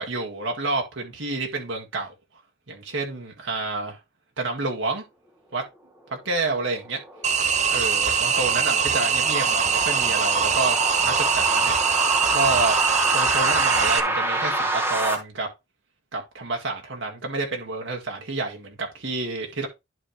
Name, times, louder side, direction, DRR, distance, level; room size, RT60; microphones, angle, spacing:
voice 1, 0.0-2.1 2.7-4.0 4.4-5.0 5.5-5.7 6.1-7.0 7.7-11.7 12.3-12.8 13.1-15.5 16.1-19.7, right 3 dB, 65° right, 1.8 m, -29 dB
sound 1, 6.6-15.1, right 1 dB, 10° right, 1.4 m, -27 dB
sound 2, 7.2-14.0, right 6 dB, 35° right, 0.7 m, -22 dB
11.0 x 4.4 x 3.1 m
head